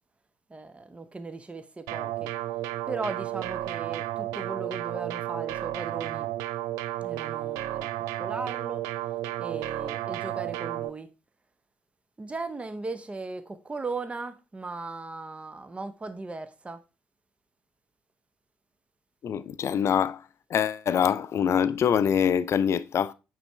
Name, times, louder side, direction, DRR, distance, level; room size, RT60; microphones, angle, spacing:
voice 1, 0.5-2.3 2.9-6.3 7.0-7.9 8.2-8.8 9.4-11.1 12.2-16.8, right 3 dB, 20° right, 0.7 m, -37 dB
sound 1, 1.9-10.9, right 14 dB, 65° right, 0.4 m, -32 dB
voice 2, 19.2-20.2 20.5-23.1, left 8 dB, 45° left, 0.4 m, -24 dB
8.7 x 3.3 x 3.3 m
figure-of-eight pair, 45°, 7 cm